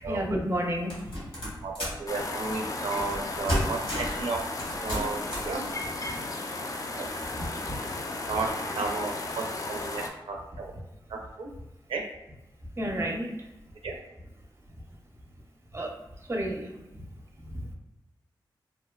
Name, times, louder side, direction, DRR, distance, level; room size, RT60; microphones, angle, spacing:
voice 1, 0.0-1.1 6.1-6.2 7.4-7.8 12.8-13.3 15.7-15.9 16.3-16.8 17.5-17.6, equal, 30° right, 1 dB, 0.6 m, -31 dB
sound 1, 0.9-2.1 3.0-3.2 3.5-4.2 4.6-5.6, equal, 80° left, 1.2 m, -31 dB
voice 2, 1.6-4.4 4.8-5.6 7.0-7.1 8.3-8.5 8.7-10.7 11.1-11.5 11.9-12.0 13.8-13.9, right 3 dB, 80° right, 1 dB, 0.4 m, -33 dB
sound 2, 2.1-10.1, left 2 dB, 40° left, 0.4 m, -35 dB
2.6 x 2.1 x 2.2 m, 0.95 s
cardioid pair, 55°, 9 cm